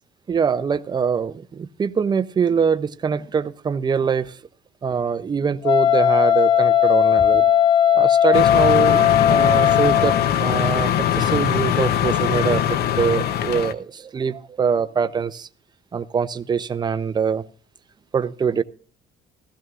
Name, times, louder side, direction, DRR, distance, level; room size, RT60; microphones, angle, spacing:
voice 1, 0.3-4.3 4.8-7.5 7.9-15.5 15.9-17.4 18.1-18.6, right 6 dB, 25° right, 0.6 m, -23 dB
Wind instrument woodwind instrument, 5.6-10.3, left 9 dB, 30° left, 0.5 m, -17 dB
sound 1, 8.3-13.7, left 10 dB, 70° left, 0.8 m, -21 dB
15.5 x 15.0 x 2.5 m
cardioid pair, 110°, 17 cm